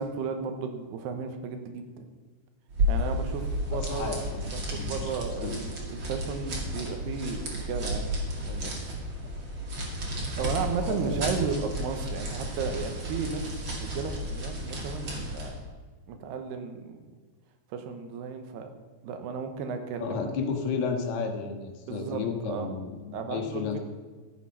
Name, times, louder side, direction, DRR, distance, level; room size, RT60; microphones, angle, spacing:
voice 1, 0.0-2.1 2.9-4.2 4.4-8.8 10.3-15.6 16.1-17.0 17.7-18.7 19.0-20.3 21.9-22.7 23.1-23.8, right 5 dB, 75° right, 6 dB, 2.9 m, -34 dB
sound 1, 2.7-15.6, equal, 40° right, 2.2 m, -32 dB
voice 2, 3.7-5.1 5.4-5.5 10.9-11.2 20.0-23.8, left 5 dB, 70° left, 4 dB, 3.2 m, -33 dB
13.5 x 8.2 x 5.6 m, 1.4 s
omnidirectional pair, 5.0 m